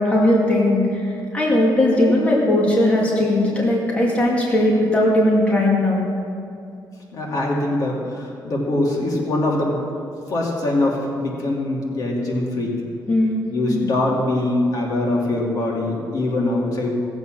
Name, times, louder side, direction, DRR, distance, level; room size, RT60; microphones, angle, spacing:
voice 1, 0.0-6.0 13.1-13.4, left 1 dB, 15° left, -4 dB, 2.1 m, -18 dB
voice 2, 7.1-9.8 10.3-12.8 13.5-16.9, left 2 dB, 50° left, -2 dB, 2.5 m, -23 dB
17.0 x 8.0 x 6.1 m, 2.5 s
cardioid pair, 150°, 8 cm